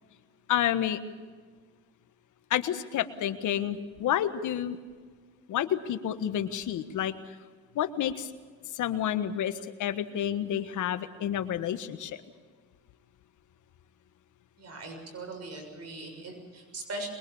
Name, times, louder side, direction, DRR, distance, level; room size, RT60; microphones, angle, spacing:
voice 1, 0.5-1.0 2.5-4.8 5.5-7.1 7.7-8.3 8.7-12.2, left 10 dB, 80° left, 10 dB, 1.5 m, -29 dB
voice 2, 14.6-17.1, right 2 dB, 55° right, 4 dB, 6.8 m, -40 dB
23.0 x 21.5 x 7.1 m, 1.5 s
cardioid pair, 90°, 30 cm